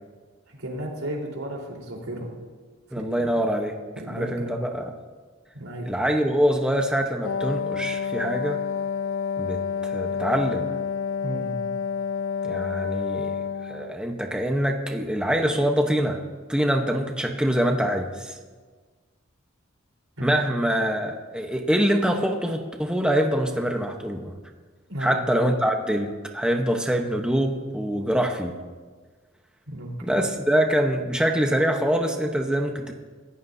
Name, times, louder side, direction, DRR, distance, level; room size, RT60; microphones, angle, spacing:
voice 1, 0.5-2.3 2.9-3.3 4.0-4.6 5.5-5.9 11.2-11.6 20.2-20.4 24.9-25.5 29.7-30.2, right 1 dB, 85° right, -1 dB, 4.0 m, -34 dB
voice 2, 2.9-3.8 4.1-4.9 5.9-8.6 9.4-10.7 12.4-13.3 13.7-16.2 16.5-18.3 20.2-24.3 25.0-28.5 30.0-32.9, equal, 5° right, 2 dB, 1.0 m, -24 dB
Wind instrument woodwind instrument, 7.2-14.0, left 6 dB, 80° left, 0.5 m, -29 dB
26.5 x 14.5 x 2.7 m, 1.4 s
head